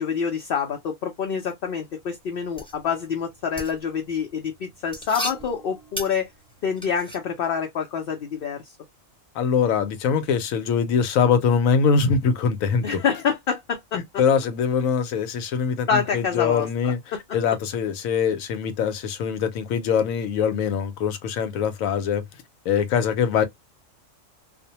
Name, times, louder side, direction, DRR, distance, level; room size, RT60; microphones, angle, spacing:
voice 1, 0.0-6.3 6.6-8.6 12.8-14.0 15.9-17.2, left 6 dB, 55° left, 0.6 m, -27 dB
sound 1, 2.2-7.2, equal, 5° left, 0.7 m, -37 dB
voice 2, 9.3-13.0 13.9-17.0 17.3-22.2 22.6-23.4, left 6 dB, 80° left, 1.0 m, -23 dB
2.5 x 2.1 x 2.7 m
omnidirectional pair, 1.4 m